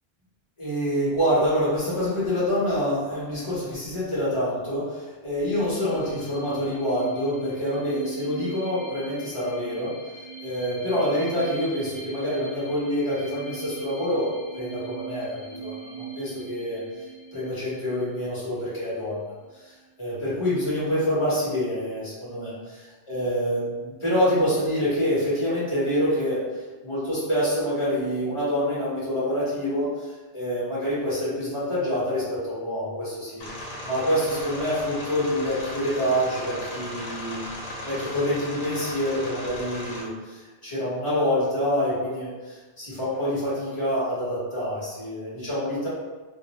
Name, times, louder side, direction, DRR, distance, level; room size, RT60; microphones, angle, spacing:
voice 1, 0.6-9.9 10.4-16.8 17.3-26.4 26.8-33.4 33.8-37.4 37.8-45.9, equal, 30° left, -9 dB, 1.1 m, -26 dB
sound 1, 5.4-18.8, right 5 dB, 45° left, 0.7 m, -40 dB
sound 2, 33.4-40.0, left 1 dB, 80° left, 0.8 m, -36 dB
2.4 x 2.0 x 2.9 m, 1.3 s
omnidirectional pair, 1.0 m